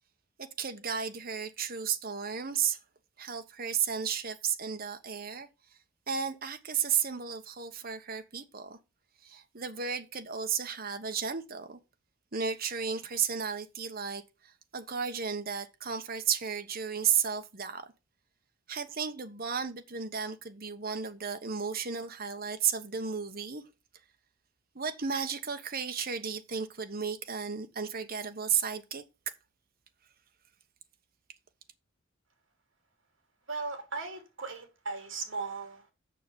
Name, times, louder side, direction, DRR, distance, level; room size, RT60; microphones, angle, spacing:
voice 1, 0.4-2.8 3.2-5.5 6.1-8.8 9.2-11.8 12.3-14.2 14.7-17.9 18.7-23.6 24.7-29.0, right 7 dB, 45° right, 1.1 m, -33 dB
voice 2, 33.5-35.9, right 4 dB, 65° right, 3.1 m, -37 dB
6.8 x 6.6 x 7.1 m
head